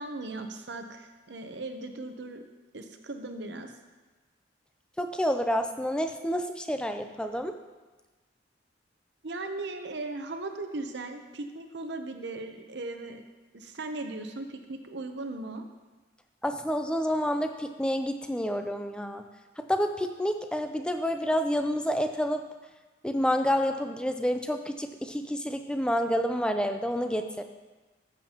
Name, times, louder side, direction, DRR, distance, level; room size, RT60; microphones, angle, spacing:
voice 1, 0.0-2.4 2.7-3.7 9.2-13.2 13.5-15.7, right 2 dB, 60° right, 6 dB, 0.8 m, -38 dB
voice 2, 5.0-7.6 16.4-19.2 19.6-22.4 23.0-27.4, equal, 5° left, 6 dB, 0.4 m, -29 dB
14.0 x 7.3 x 2.9 m, 1.2 s
head